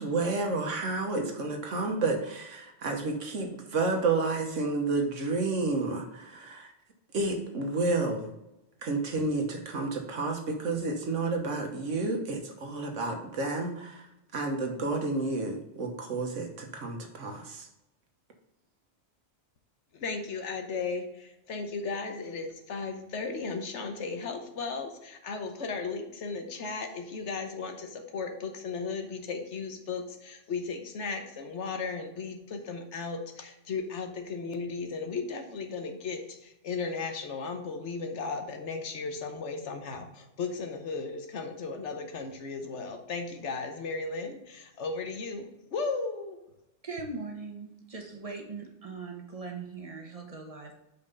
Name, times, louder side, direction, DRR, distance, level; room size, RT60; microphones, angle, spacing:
voice 1, 0.0-6.7 7.1-8.3 8.8-14.1 14.3-17.7, right 3 dB, 80° right, 3 dB, 1.4 m, -30 dB
voice 2, 19.9-46.4, left 4 dB, 70° left, 6 dB, 1.2 m, -35 dB
voice 3, 46.8-50.8, right 4 dB, 30° right, 3 dB, 1.0 m, -40 dB
5.6 x 4.6 x 5.4 m, 0.89 s
omnidirectional pair, 1.3 m